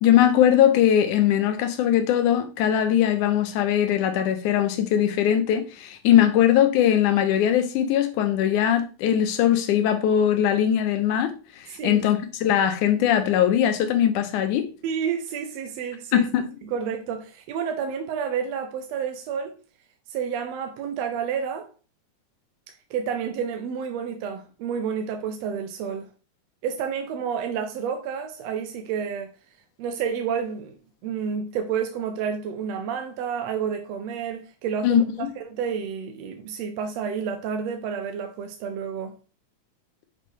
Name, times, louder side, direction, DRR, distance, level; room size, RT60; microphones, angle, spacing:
voice 1, 0.0-14.7 16.1-16.5 34.8-35.3, left 10 dB, 85° left, 2.4 m, -21 dB
voice 2, 14.8-16.3 16.7-19.6 20.1-21.7 22.9-26.1 26.6-29.3 29.8-30.8 31.0-35.0 35.4-39.1, right 7 dB, 75° right, 1.7 m, -30 dB
6.5 x 5.4 x 3.2 m
omnidirectional pair, 3.4 m